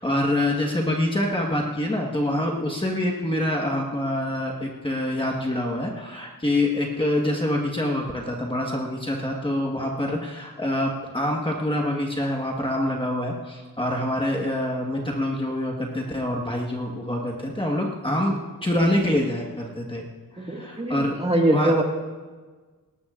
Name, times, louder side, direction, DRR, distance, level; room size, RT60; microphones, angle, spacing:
voice 1, 0.0-20.0 20.3-21.2 21.5-21.8, left 1 dB, 15° left, -1 dB, 1.4 m, -26 dB
voice 2, 9.8-10.2 18.1-18.4 20.4-21.8, right 1 dB, 15° right, 0 dB, 2.0 m, -25 dB
19.0 x 18.5 x 2.5 m, 1.4 s
wide cardioid pair, 115°, 35 cm